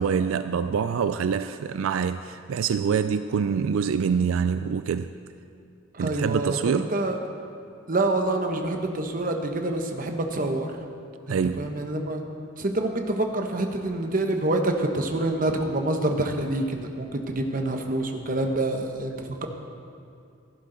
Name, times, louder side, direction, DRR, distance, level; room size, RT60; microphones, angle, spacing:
voice 1, 0.0-5.1 6.0-6.9 11.3-11.6, right 6 dB, 80° right, 0.3 m, -25 dB
voice 2, 5.9-7.2 7.9-10.7 11.3-12.2 12.6-19.5, right 2 dB, 40° right, 1.0 m, -27 dB
15.0 x 11.5 x 3.9 m
head